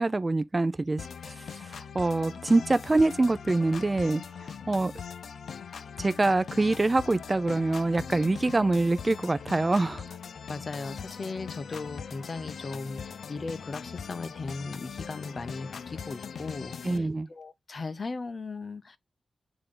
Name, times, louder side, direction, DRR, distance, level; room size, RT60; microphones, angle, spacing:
voice 1, 0.0-4.9 6.0-10.2 16.8-17.3, right 2 dB, 30° right, 0.6 m, -25 dB
sound 1, 1.0-17.0, left 6 dB, 90° left, 0.6 m, -41 dB
voice 2, 10.5-19.0, left 3 dB, 50° left, 0.8 m, -37 dB
8.2 x 3.7 x 3.8 m
wide cardioid pair, 85°, 0 cm